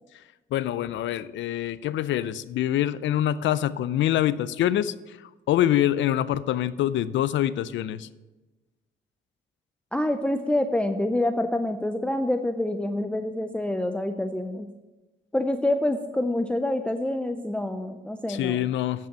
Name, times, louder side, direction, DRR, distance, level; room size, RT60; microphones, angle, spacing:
voice 1, 0.5-5.2 5.5-8.1 18.3-19.1, left 12 dB, 75° left, 16 dB, 0.5 m, -25 dB
voice 2, 9.9-14.7 15.3-18.6, left 1 dB, 5° left, 7 dB, 0.5 m, -27 dB
8.9 x 5.5 x 6.0 m, 1.1 s
cardioid pair, 90°, 20 cm